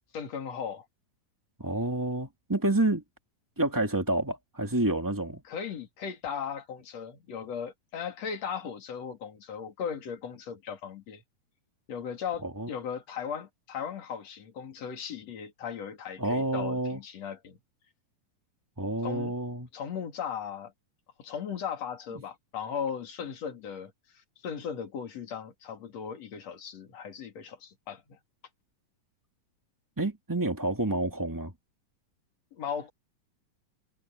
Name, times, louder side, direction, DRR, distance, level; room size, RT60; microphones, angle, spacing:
voice 1, 0.1-0.9 5.5-11.2 11.9-17.6 19.0-19.3 19.7-20.7 21.2-28.2 32.5-32.9, left 7 dB, 55° left, 3.7 m, -37 dB
voice 2, 1.6-3.0 3.6-5.4 12.4-12.7 16.2-17.0 18.8-19.7 30.0-31.5, right 1 dB, 10° right, 1.5 m, -29 dB
omnidirectional pair, 3.8 m